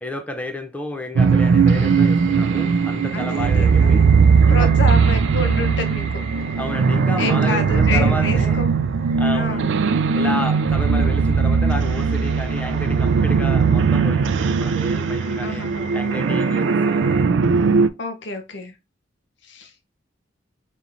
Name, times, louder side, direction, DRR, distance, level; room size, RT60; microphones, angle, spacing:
voice 1, 0.0-4.1 4.5-4.7 6.6-8.6 9.2-9.7 10.1-17.0, left 1 dB, 10° left, 0.4 m, -31 dB
sound 1, 1.2-17.9, right 5 dB, 80° right, 0.4 m, -18 dB
sound 2, 1.4-17.3, right 3 dB, 35° right, 0.9 m, -40 dB
voice 2, 3.1-4.1 4.5-6.2 7.2-8.8 9.3-9.7 15.4-15.9 18.0-18.7 19.4-19.7, left 2 dB, 70° left, 0.7 m, -29 dB
5.4 x 3.0 x 2.5 m
head